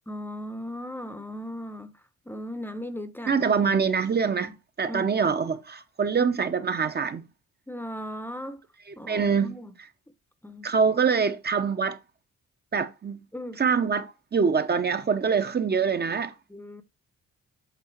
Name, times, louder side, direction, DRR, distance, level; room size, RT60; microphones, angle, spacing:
voice 1, 0.1-1.9 2.3-3.8 4.9-5.1 7.7-8.6 9.0-9.7 10.4-10.7 13.3-13.6 16.5-16.8, left 1 dB, 5° left, 0.8 m, -37 dB
voice 2, 3.3-4.5 4.8-7.3 9.1-9.5 10.6-12.0 12.7-13.2 13.6-16.3, right 6 dB, 35° right, 0.9 m, -24 dB
8.3 x 3.7 x 4.5 m
cardioid pair, 90°, 30 cm